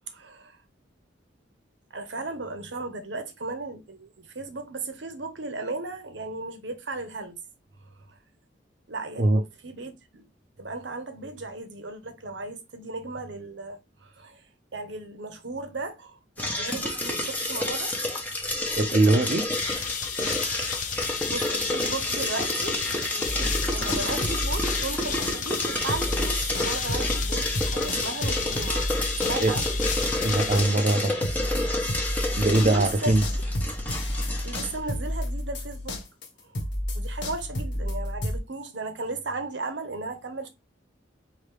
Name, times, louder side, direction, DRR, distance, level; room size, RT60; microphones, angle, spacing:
voice 1, 0.1-0.6 1.9-7.4 8.1-8.2 8.9-10.2 10.6-18.0 21.3-28.9 29.2-29.7 32.6-33.1 34.4-36.0 36.4-36.6 36.9-40.5, right 3 dB, 75° right, 0.9 m, -36 dB
sound 1, 16.4-34.8, left 1 dB, 10° left, 0.8 m, -30 dB
voice 2, 18.8-19.4 29.4-29.5 30.2-31.1 32.4-33.2, right 2 dB, 40° right, 0.5 m, -21 dB
sound 2, 19.5-31.4, left 6 dB, 40° left, 0.6 m, -33 dB
sound 3, 23.2-25.6 25.9-38.4, left 1 dB, 75° left, 1.2 m, -31 dB
4.6 x 2.8 x 3.2 m
head